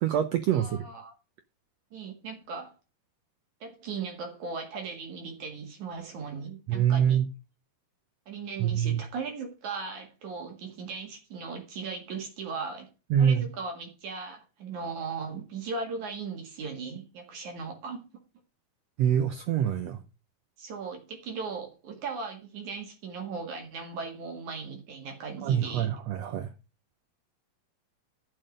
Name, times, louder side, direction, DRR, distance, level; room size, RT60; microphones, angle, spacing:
voice 1, 0.0-0.8 6.7-7.3 8.6-9.0 13.1-13.5 19.0-20.0 25.4-26.5, right 9 dB, 80° right, 1.5 m, -25 dB
voice 2, 0.5-1.1 1.9-2.8 3.6-7.2 8.3-12.9 13.2-18.0 20.6-25.9, right 4 dB, 60° right, 3.1 m, -38 dB
11.5 x 6.6 x 5.1 m
omnidirectional pair, 4.0 m